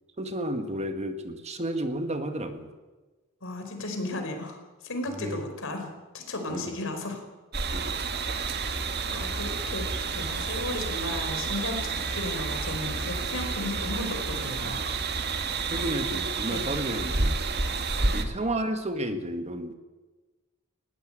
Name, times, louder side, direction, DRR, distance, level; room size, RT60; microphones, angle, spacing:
voice 1, 0.2-2.7 5.1-5.4 6.5-6.6 7.7-8.0 15.7-17.4 18.0-19.7, right 1 dB, 30° right, 7 dB, 1.9 m, -32 dB
voice 2, 3.4-4.6 4.8-7.2 8.3-8.4 9.1-9.9 10.1-15.4 15.7-16.0 16.5-16.7 18.0-18.2, left 2 dB, 65° left, 5 dB, 4.9 m, -35 dB
sound 1, 7.5-18.2, right 4 dB, 50° right, 1.9 m, -30 dB
20.0 x 18.0 x 8.9 m, 1.2 s
head